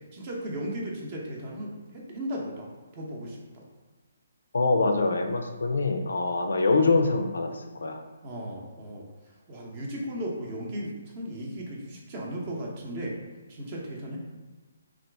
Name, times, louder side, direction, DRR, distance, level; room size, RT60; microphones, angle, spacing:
voice 1, 0.1-3.6 8.2-9.1 9.5-13.2 13.5-14.2, equal, 35° right, -2 dB, 0.7 m, -36 dB
voice 2, 4.5-8.0, left 3 dB, 75° left, 5 dB, 0.4 m, -24 dB
2.8 x 2.4 x 3.3 m, 1.3 s
figure-of-eight pair, 140°, 0 cm